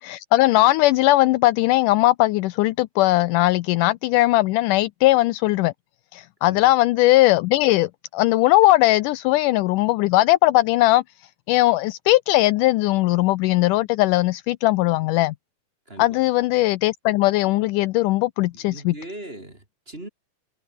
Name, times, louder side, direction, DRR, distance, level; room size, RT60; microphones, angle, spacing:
voice 1, 0.0-5.7 6.1-11.0 11.5-15.3 16.0-18.9, left 17 dB, 80° left, 2.1 m, -19 dB
voice 2, 6.4-6.7 15.9-16.2 18.5-20.1, right 1 dB, 15° right, 3.9 m, -39 dB
omnidirectional pair, 3.9 m